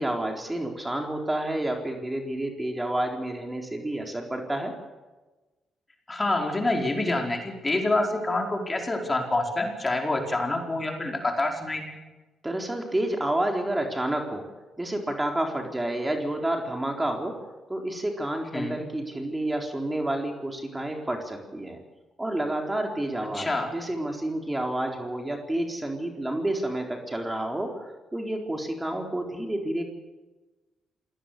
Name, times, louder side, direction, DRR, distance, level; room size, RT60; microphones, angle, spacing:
voice 1, 0.0-4.7 12.4-14.5 14.8-17.3 17.7-21.8 22.2-27.7 28.1-29.8, right 1 dB, 15° right, 2 dB, 4.1 m, -29 dB
voice 2, 6.1-12.0 18.5-18.8 23.3-23.7, left 2 dB, 25° left, 2 dB, 4.8 m, -27 dB
27.5 x 18.0 x 6.9 m, 1.2 s
supercardioid pair, 50°, 0 cm